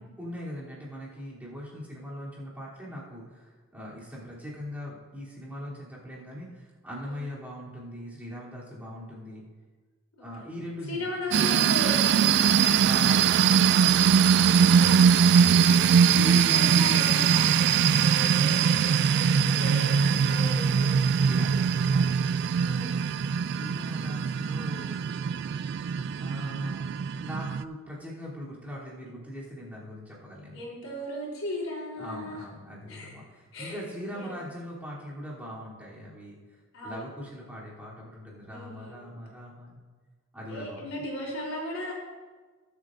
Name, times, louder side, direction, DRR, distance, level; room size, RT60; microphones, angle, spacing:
voice 1, 0.0-9.4 10.2-11.1 12.8-14.6 15.2-15.8 21.2-22.1 23.5-25.0 26.2-26.9 27.2-30.6 32.0-36.4 36.8-39.8 40.3-41.0, equal, 10° right, -8 dB, 3.1 m, -41 dB
voice 2, 10.2-10.5 10.9-12.8 14.7-15.2 16.1-21.0 22.6-23.0 30.5-32.4 32.9-33.1 33.5-33.8 34.1-34.4 36.7-37.0 38.5-39.2 40.5-41.9, left 1 dB, 80° left, -3 dB, 3.6 m, -37 dB
sound 1, 11.3-27.6, right 7 dB, 55° right, 0.3 m, -22 dB
21.0 x 8.2 x 2.6 m, 1.4 s
head